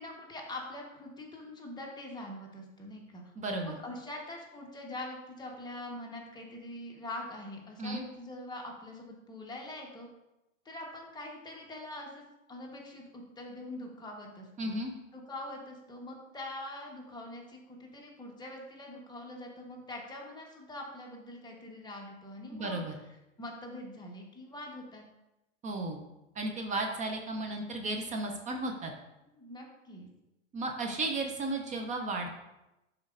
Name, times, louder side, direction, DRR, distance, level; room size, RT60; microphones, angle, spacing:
voice 1, 0.0-3.2 3.6-10.1 10.6-14.7 15.1-22.8 23.4-25.0 29.4-30.1, left 1 dB, 10° left, -1 dB, 1.1 m, -44 dB
voice 2, 3.4-3.8 7.8-8.0 14.6-14.9 22.5-22.9 25.6-26.0 26.3-28.9 30.5-32.4, right 2 dB, 20° right, 3 dB, 0.6 m, -34 dB
10.0 x 4.4 x 2.5 m, 0.95 s
hypercardioid pair, 110°, 40 cm